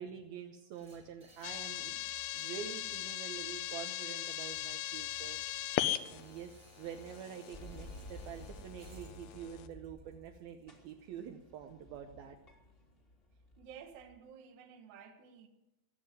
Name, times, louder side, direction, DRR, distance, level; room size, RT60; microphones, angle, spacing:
voice 1, 0.0-2.0 2.3-5.4 6.1-12.4, right 8 dB, 75° right, 4 dB, 2.4 m, -46 dB
sound 1, 0.7-12.8, equal, 30° right, 1.4 m, -61 dB
sound 2, 1.4-9.7, left 13 dB, 80° left, 2.3 m, -39 dB
sound 3, 7.5-10.4 10.7-14.2, left 1 dB, 25° left, 1.2 m, -53 dB
voice 2, 13.6-15.5, right 7 dB, 60° right, 4 dB, 2.3 m, -53 dB
18.0 x 7.6 x 9.1 m, 0.93 s
omnidirectional pair, 4.8 m